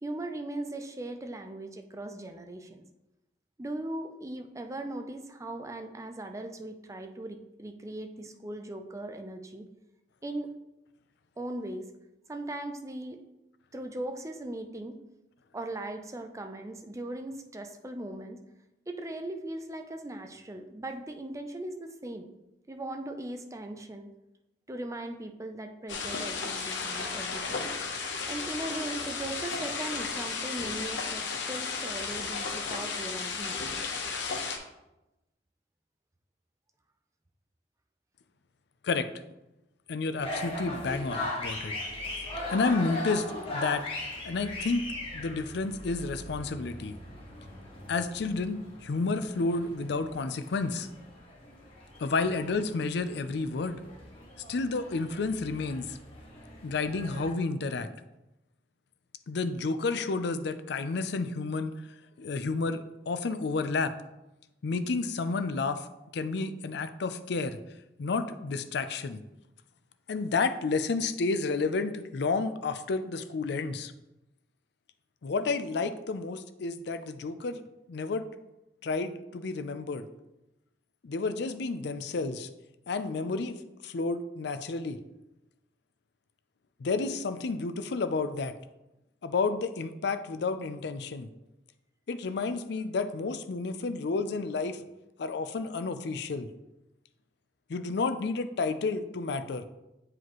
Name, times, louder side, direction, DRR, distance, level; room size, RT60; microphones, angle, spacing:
voice 1, 0.0-2.8 3.6-9.7 10.2-10.5 11.4-11.9 12.3-13.2 13.7-15.0 15.5-18.4 18.9-22.3 22.7-24.1 24.7-27.7 28.3-33.6, right 1 dB, 15° right, 6 dB, 0.5 m, -39 dB
sound 1, 25.9-34.6, left 4 dB, 80° left, 0.9 m, -34 dB
voice 2, 39.9-41.7 42.5-43.2 43.5-43.9 44.2-44.8 45.1-47.0 47.9-50.9 52.0-53.8 54.5-56.0 56.6-57.9 59.3-61.7 62.2-63.9 64.6-65.9 66.1-67.6 68.0-69.2 70.1-73.9 75.2-77.6 77.9-78.3 78.8-80.0 81.0-82.5 82.9-83.6 83.8-85.0 86.8-88.5 89.2-91.3 92.1-94.8 95.2-96.5 97.7-99.7, left 3 dB, 65° left, 10 dB, 0.5 m, -31 dB
sound 2, 40.2-57.3, left 1 dB, 30° left, 1.7 m, -40 dB
7.9 x 4.8 x 3.0 m, 0.94 s
head